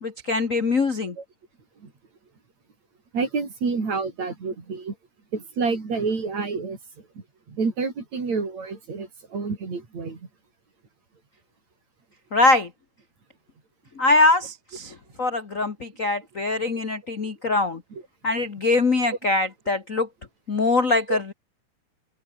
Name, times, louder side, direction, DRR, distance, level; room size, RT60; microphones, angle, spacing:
voice 1, 0.0-1.1 12.3-12.7 14.0-17.8 18.2-20.1 20.5-21.3, left 3 dB, 55° left, 0.9 m, -22 dB
voice 2, 3.1-5.0 5.3-7.1 7.5-10.3 17.9-18.0 21.1-21.2, right 4 dB, 50° right, 6.1 m, -28 dB
open air
omnidirectional pair, 4.1 m